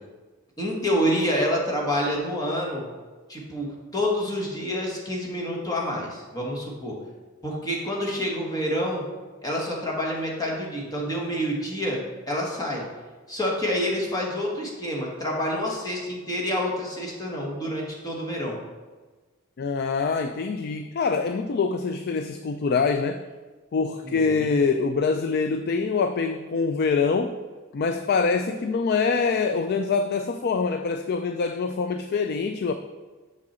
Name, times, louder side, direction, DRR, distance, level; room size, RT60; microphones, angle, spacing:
voice 1, 0.6-2.8 3.3-6.9 7.4-9.0 9.4-12.8 13.3-18.6 24.0-24.5, equal, 20° left, -2 dB, 1.6 m, -28 dB
voice 2, 19.6-23.3 23.7-27.4 27.7-32.7, left 4 dB, 45° left, 8 dB, 0.3 m, -25 dB
6.6 x 6.1 x 4.3 m, 1.3 s
head